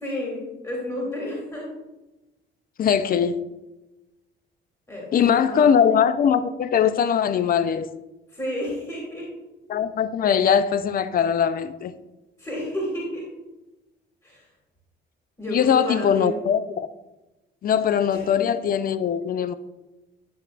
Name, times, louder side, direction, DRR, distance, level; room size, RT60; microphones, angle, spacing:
voice 1, 0.0-1.7 4.9-5.8 8.3-9.3 12.4-13.3 14.2-14.4 15.4-16.4 18.1-18.3, equal, 15° left, 2.1 m, -31 dB
voice 2, 2.8-3.4 5.1-7.9 9.7-11.9 15.5-16.9 17.6-19.5, left 8 dB, 45° left, 0.4 m, -21 dB
9.4 x 5.7 x 2.4 m
cardioid pair, 90°, 20 cm